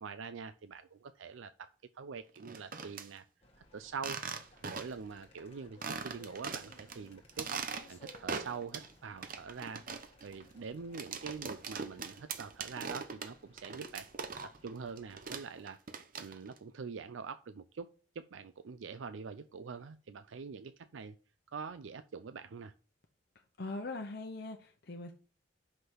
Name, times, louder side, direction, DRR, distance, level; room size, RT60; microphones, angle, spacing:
voice 1, 0.0-3.2 3.7-4.2 4.6-7.5 7.9-9.8 10.2-14.1 14.6-15.8 16.2-17.9 18.2-21.2 21.5-22.7, right 5 dB, 75° right, 0.5 m, -44 dB
sound 1, 2.4-3.1 3.9-5.1 5.4-5.5 5.8-7.0 7.3-8.9 9.2-14.7 15.0-16.6, right 5 dB, 45° right, 0.8 m, -41 dB
sound 2, 3.4-15.5, left 2 dB, 30° left, 1.6 m, -61 dB
voice 2, 23.6-25.1, left 2 dB, 55° left, 0.8 m, -41 dB
5.9 x 5.4 x 6.2 m
head